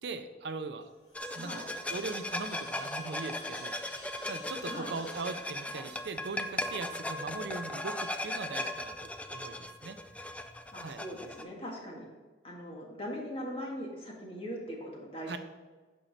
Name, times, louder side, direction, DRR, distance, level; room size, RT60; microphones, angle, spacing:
voice 1, 0.0-0.9 1.4-1.6 1.9-10.0 10.8-11.0 15.3-15.4, right 3 dB, 70° right, 8 dB, 0.6 m, -40 dB
sound 1, 0.8-7.1, left 2 dB, 75° left, 2.5 m, -53 dB
sound 2, 1.1-11.4, left 1 dB, 5° left, 0.4 m, -38 dB
voice 2, 1.4-1.7 4.7-4.9 10.7-12.1 12.4-15.3, equal, 30° left, -2 dB, 1.7 m, -40 dB
9.0 x 5.5 x 4.1 m, 1.4 s
head